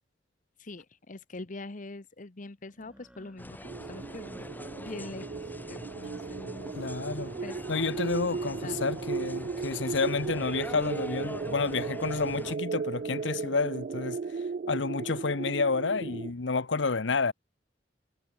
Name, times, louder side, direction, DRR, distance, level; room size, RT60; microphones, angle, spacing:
voice 1, 0.6-3.6 3.9-4.5 4.8-6.9 7.4-7.6 8.0-8.8 16.1-16.2, left 2 dB, 45° left, 1.0 m, -44 dB
sound 1, 1.3-1.4 2.7-3.6 4.1-5.1 5.5-6.4 6.8-7.7 8.3-10.4 11.1-12.0 12.8-13.9 15.1-15.8, equal, 5° right, 3.6 m, -58 dB
sound 2, 3.4-12.6, left 1 dB, 10° left, 2.7 m, -44 dB
sound 3, 3.6-16.3, right 5 dB, 45° right, 0.4 m, -36 dB
voice 2, 6.7-7.3 7.7-17.3, left 4 dB, 90° left, 1.0 m, -30 dB
head